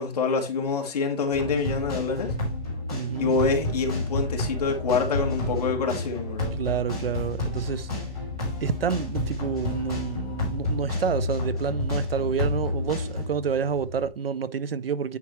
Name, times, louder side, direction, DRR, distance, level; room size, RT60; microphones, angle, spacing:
voice 1, 0.0-2.3 3.2-6.5, left 4 dB, 40° left, 1.7 m, -26 dB
sound 1, 1.3-13.3, left 2 dB, 5° right, 0.5 m, -30 dB
sound 2, 1.9-14.1, equal, 90° right, 3.1 m, -42 dB
voice 2, 2.9-3.4 6.6-7.9 8.6-15.2, right 7 dB, 65° right, 0.7 m, -28 dB
sound 3, 4.5-10.8, left 3 dB, 20° left, 3.0 m, -48 dB
9.4 x 5.9 x 3.1 m
hypercardioid pair, 175°, 32 cm